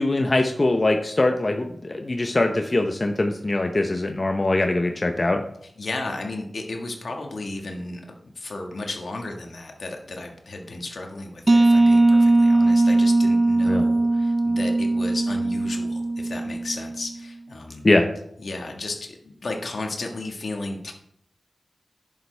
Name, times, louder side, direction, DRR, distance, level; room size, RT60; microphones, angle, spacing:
voice 1, 0.0-5.4 13.6-13.9 17.8-18.0, left 2 dB, 40° left, 4 dB, 0.8 m, -22 dB
voice 2, 5.8-8.0 8.3-17.8 18.4-20.9, left 2 dB, 75° left, 2 dB, 1.6 m, -34 dB
sound 1, 11.5-17.0, right 2 dB, 35° right, 0.5 m, -19 dB
10.5 x 7.0 x 3.4 m, 0.71 s
wide cardioid pair, 55°, 0 cm